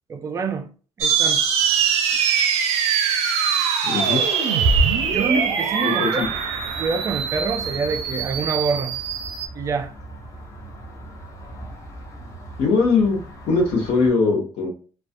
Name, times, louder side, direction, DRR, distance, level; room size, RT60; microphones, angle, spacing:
voice 1, 0.1-0.7 1.0-1.4 5.1-6.2 6.7-9.0 9.5-9.9, right 4 dB, 30° right, 0.3 m, -26 dB
sound 1, 1.0-9.5, right 6 dB, 90° right, 0.5 m, -22 dB
voice 2, 3.8-4.2 5.8-6.3 12.6-13.2 13.5-14.7, left 4 dB, 85° left, 0.8 m, -20 dB
sound 2, 6.2-14.1, right 1 dB, 30° left, 0.7 m, -39 dB
2.4 x 2.2 x 2.5 m
cardioid pair, 135°, 11 cm